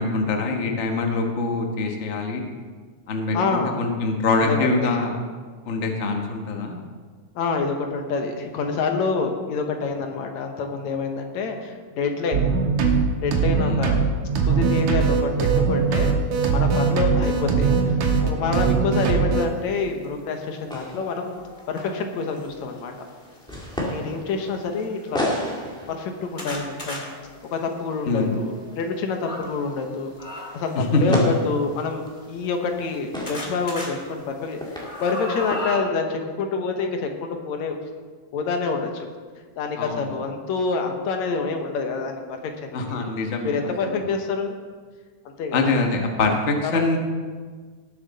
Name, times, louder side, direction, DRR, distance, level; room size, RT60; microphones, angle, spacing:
voice 1, 0.0-2.4 3.1-5.2 5.7-6.8 13.6-13.8 28.1-28.3 30.7-31.2 39.8-40.1 42.7-43.6 43.8-44.0 45.5-47.0, left 3 dB, 60° left, 3 dB, 0.7 m, -24 dB
voice 2, 3.3-3.8 4.4-4.9 7.4-12.7 13.2-14.1 14.4-16.1 16.5-21.4 21.7-22.9 23.9-25.4 25.9-27.1 27.5-30.1 30.5-37.8 38.3-39.1 39.6-43.0 43.4-44.6 45.3-45.7 46.6-47.0, left 4 dB, 75° left, 4 dB, 2.4 m, -27 dB
sound 1, 12.3-19.5, right 5 dB, 75° right, 2.6 m, -21 dB
sound 2, 19.8-19.9 20.5-22.5 23.4-23.8 24.5-24.6 24.8-24.9 25.5-29.5 30.2-30.8 31.7-33.0 33.3-33.9 34.3-35.8, left 1 dB, 20° left, 1.4 m, -37 dB
sound 3, 20.7-21.8 22.2-36.3, equal, ahead, 1.6 m, -35 dB
19.0 x 7.3 x 4.1 m, 1.5 s
omnidirectional pair, 3.3 m